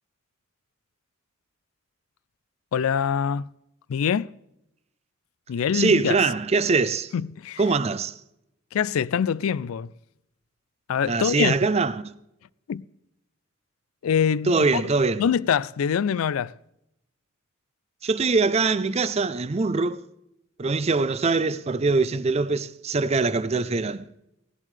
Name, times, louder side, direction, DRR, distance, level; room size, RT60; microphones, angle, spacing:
voice 1, 2.7-3.5 3.9-4.3 5.5-6.2 7.1-7.6 8.7-9.9 10.9-11.5 12.7-12.8 14.0-14.8 15.2-16.5, left 7 dB, 90° left, 0.4 m, -24 dB
voice 2, 5.7-7.1 7.6-8.1 11.1-12.1 14.5-15.3 18.0-20.0 20.6-24.1, right 4 dB, 30° right, 0.5 m, -23 dB
16.5 x 11.0 x 3.3 m
head